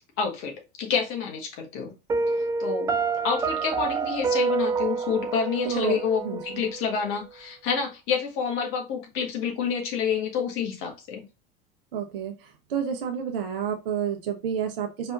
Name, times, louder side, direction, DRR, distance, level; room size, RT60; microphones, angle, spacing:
voice 1, 0.2-1.9 2.6-3.0 3.2-11.2, left 6 dB, 45° left, 2 dB, 1.6 m, -28 dB
Piano, 2.1-7.0, right 5 dB, 10° right, 0.3 m, -28 dB
voice 2, 5.6-6.6 11.9-15.1, right 8 dB, 65° right, 4 dB, 1.2 m, -30 dB
5.0 x 3.4 x 2.5 m, 0.27 s
figure-of-eight pair, 75°, 30 cm